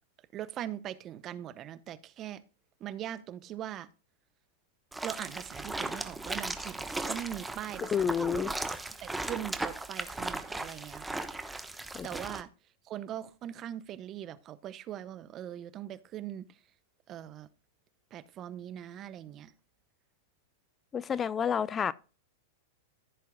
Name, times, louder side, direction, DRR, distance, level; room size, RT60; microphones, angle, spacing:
voice 1, 0.3-2.4 2.8-3.9 5.0-11.2 12.0-12.5 12.8-16.6 17.1-17.5 18.1-19.5, right 11 dB, 35° right, 0.8 m, -41 dB
sound 1, 4.9-12.4, right 2 dB, 5° right, 1.0 m, -37 dB
voice 2, 7.9-8.5 11.9-12.1 20.9-21.9, left 7 dB, 25° left, 0.4 m, -29 dB
14.5 x 7.4 x 2.3 m
hypercardioid pair, 110°, 0 cm